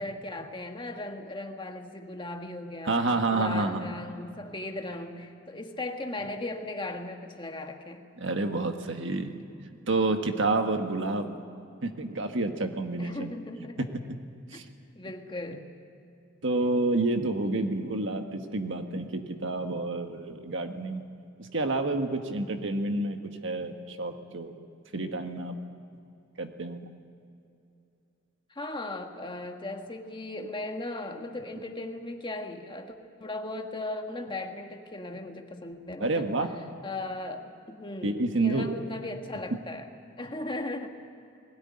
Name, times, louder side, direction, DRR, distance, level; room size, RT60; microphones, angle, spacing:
voice 1, 0.0-3.0 3.3-8.1 13.0-13.9 14.9-15.7 28.5-36.4 36.8-39.9 40.2-40.9, left 2 dB, 25° left, 4 dB, 1.5 m, -37 dB
voice 2, 2.8-3.9 8.2-9.4 9.9-11.4 11.8-13.4 14.5-14.6 16.4-21.0 21.4-24.5 24.9-25.5 26.4-26.8 36.0-36.5 38.0-38.7, right 2 dB, 65° right, 6 dB, 1.5 m, -29 dB
21.0 x 17.5 x 9.8 m, 2.6 s
head